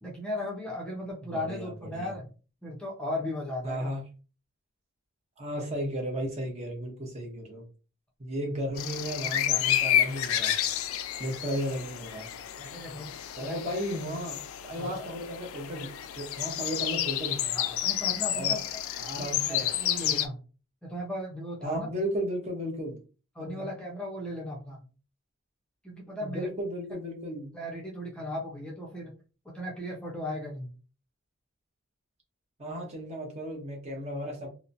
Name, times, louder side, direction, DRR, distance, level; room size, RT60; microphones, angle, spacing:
voice 1, 0.0-2.3 2.6-3.9 12.6-13.1 13.4-13.5 14.7-15.1 17.5-18.6 19.2-20.4 20.8-21.9 23.4-24.8 25.8-26.5 27.5-29.1 29.4-30.7, left 1 dB, 5° left, -3 dB, 0.6 m, -36 dB
voice 2, 1.3-2.1 3.6-4.0 5.4-7.7 8.2-10.6 11.2-12.3 13.4-17.7 18.3-18.5 19.0-19.7 21.6-23.0 23.5-23.7 26.2-27.5 32.6-34.5, equal, 30° right, 0 dB, 0.7 m, -34 dB
sound 1, 8.8-20.3, left 11 dB, 70° left, 0.3 m, -30 dB
2.8 x 2.1 x 2.5 m, 0.35 s
head